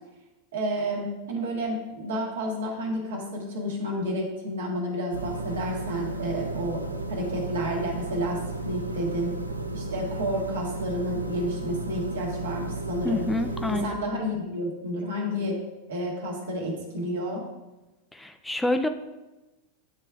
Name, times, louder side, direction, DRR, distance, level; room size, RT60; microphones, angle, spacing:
voice 1, 0.5-6.8 7.1-9.3 9.7-13.3 13.7-15.6 15.9-17.4, equal, 65° right, -1 dB, 1.4 m, -30 dB
sound 1, 5.1-13.9, right 2 dB, 85° right, 0.4 m, -34 dB
voice 2, 13.0-13.9 18.1-18.9, left 2 dB, 5° left, 7 dB, 0.4 m, -27 dB
8.9 x 3.4 x 3.4 m, 1.1 s
figure-of-eight pair, 90°, 0 cm